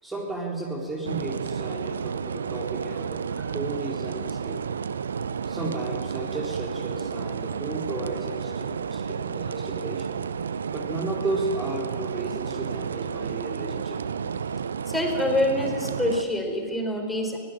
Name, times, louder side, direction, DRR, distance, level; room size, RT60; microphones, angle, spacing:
voice 1, 0.0-3.2 3.5-4.6 5.4-10.2 10.7-14.0, right 2 dB, 10° right, -2 dB, 3.9 m, -34 dB
sound 1, 1.0-16.2, right 6 dB, 75° right, 0.7 m, -31 dB
voice 2, 14.9-17.4, left 1 dB, 5° left, 2 dB, 4.7 m, -26 dB
22.5 x 18.0 x 9.1 m, 2.1 s
figure-of-eight pair, 100°, 0 cm